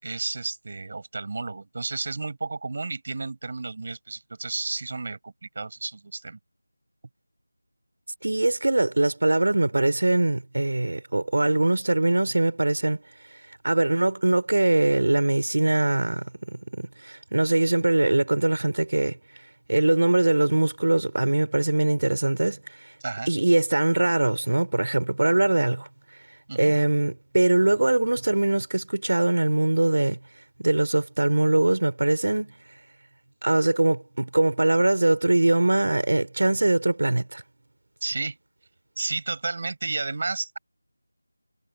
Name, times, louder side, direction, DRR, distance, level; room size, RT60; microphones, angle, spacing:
voice 1, 0.0-6.4 23.0-23.3 26.5-26.7 38.0-38.4 39.0-40.6, right 3 dB, 35° right, 4.6 m, -32 dB
voice 2, 8.2-13.0 13.3-19.2 19.7-22.9 23.3-25.9 26.6-30.2 30.6-32.6 33.4-37.4, right 2 dB, 60° right, 4.2 m, -22 dB
figure-of-eight pair, 175°, 0 cm